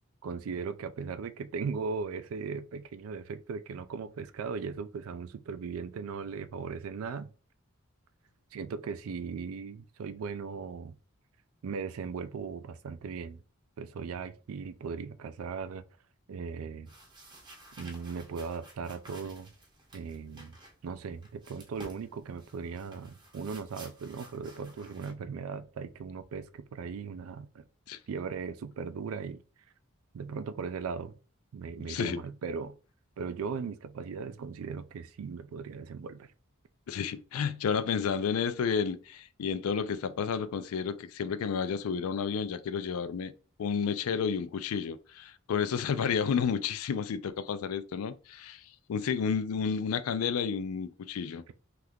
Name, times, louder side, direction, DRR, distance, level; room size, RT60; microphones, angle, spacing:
voice 1, 0.2-7.3 8.5-11.0 11.6-13.4 13.8-15.8 16.3-16.9 17.8-19.5 19.9-20.6 20.8-27.6 28.1-29.4 30.1-31.2 31.5-32.8 33.2-36.3, right 5 dB, 85° right, 0.4 m, -38 dB
sound 1, 16.9-25.1, right 2 dB, 20° right, 0.6 m, -53 dB
voice 2, 31.9-32.2 36.9-43.3 43.6-51.5, left 6 dB, 85° left, 0.4 m, -31 dB
2.7 x 2.4 x 3.4 m
head